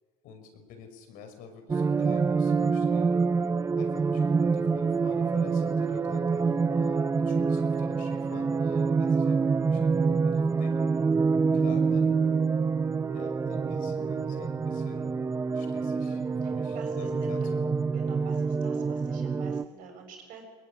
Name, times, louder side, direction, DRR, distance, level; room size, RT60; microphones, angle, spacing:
voice 1, 0.2-3.2 3.8-10.9 11.5-12.2 13.1-15.1 15.5-17.8, left 5 dB, 65° left, 6 dB, 5.7 m, -47 dB
sound 1, 1.7-19.6, right 5 dB, 20° right, 0.6 m, -26 dB
voice 2, 16.4-17.5 17.9-20.4, right 5 dB, 65° right, 4 dB, 7.2 m, -46 dB
22.0 x 21.0 x 10.0 m, 1.5 s
supercardioid pair, 115°, 15 cm